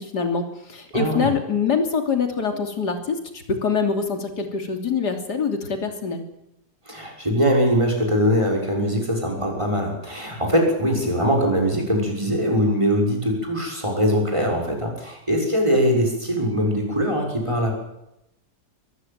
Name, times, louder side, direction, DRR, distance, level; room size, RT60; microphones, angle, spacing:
voice 1, 0.0-6.2, left 5 dB, 70° left, 5 dB, 3.5 m, -24 dB
voice 2, 0.9-1.3 6.9-17.8, equal, 15° right, 1 dB, 6.5 m, -22 dB
23.5 x 15.0 x 9.1 m, 0.86 s
omnidirectional pair, 1.9 m